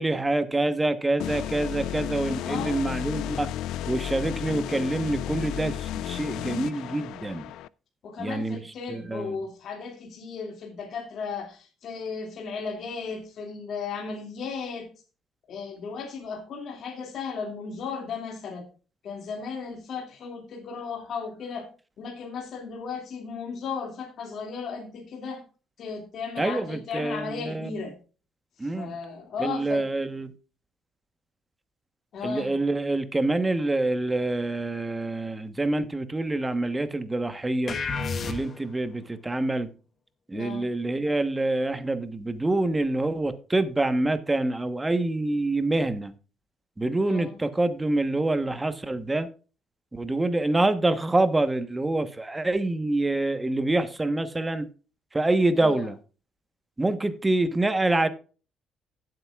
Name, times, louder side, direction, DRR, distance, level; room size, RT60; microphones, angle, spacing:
voice 1, 0.0-3.5 3.9-7.5 8.2-8.6 8.9-9.4 26.4-27.7 28.6-28.9 29.4-30.3 32.2-37.8 38.3-39.7 40.3-46.1 46.8-49.3 49.9-54.6 55.1-56.0 56.8-58.1, right 2 dB, 15° right, 1.1 m, -26 dB
sound 1, 1.2-7.7, left 11 dB, 85° left, 0.4 m, -33 dB
voice 2, 2.4-2.9 8.0-14.9 15.5-18.7 19.0-21.7 22.0-25.4 25.8-28.0 28.7-29.9 32.1-32.5 40.3-40.7 47.0-47.4 55.5-55.9, left 5 dB, 60° left, 2.4 m, -35 dB
sound 2, 37.7-38.8, left 4 dB, 40° left, 1.3 m, -31 dB
16.5 x 7.9 x 2.4 m
cardioid pair, 110°, 0 cm